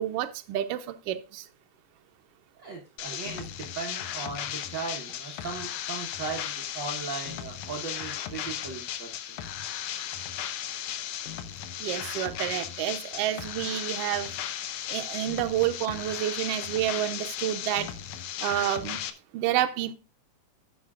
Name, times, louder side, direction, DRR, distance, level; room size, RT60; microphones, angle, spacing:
voice 1, 0.0-1.4 3.1-3.2 11.8-14.3 14.9-17.9 18.4-19.0 19.3-19.9, right 12 dB, 85° right, 1.3 m, -29 dB
voice 2, 2.6-9.4, right 4 dB, 55° right, 1.3 m, -37 dB
sound 1, 3.0-19.1, left 10 dB, 75° left, 2.0 m, -36 dB
14.5 x 6.5 x 2.4 m
omnidirectional pair, 3.6 m